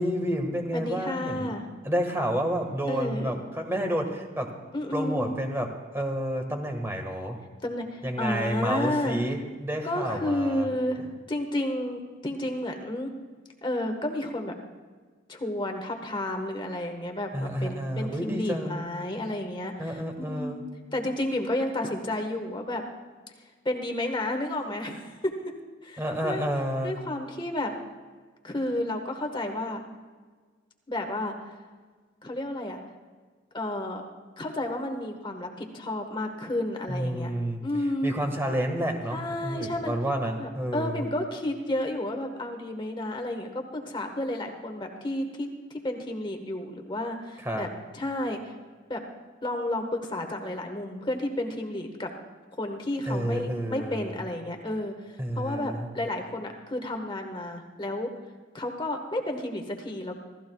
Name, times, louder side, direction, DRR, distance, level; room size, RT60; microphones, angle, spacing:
voice 1, 0.0-1.5 1.8-4.5 4.9-5.7 5.9-7.4 8.0-10.7 17.3-18.9 19.8-20.6 26.0-27.0 36.9-37.6 38.0-41.0 47.4-47.6 53.1-54.2 55.2-55.9, equal, 15° right, 3 dB, 1.6 m, -30 dB
voice 2, 0.7-1.7 2.9-3.4 4.7-5.3 7.6-9.2 9.8-13.1 13.6-14.6 15.3-22.8 23.4-25.3 25.8-26.4 26.8-27.7 28.4-29.8 30.9-31.3 32.2-32.8 33.5-34.0 34.4-37.3 37.6-38.1 39.1-39.9 40.4-48.5 48.9-49.0 49.4-52.1 52.6-58.1 58.5-60.2, left 1 dB, 25° left, 3 dB, 1.3 m, -31 dB
27.5 x 14.5 x 2.3 m, 1.5 s
head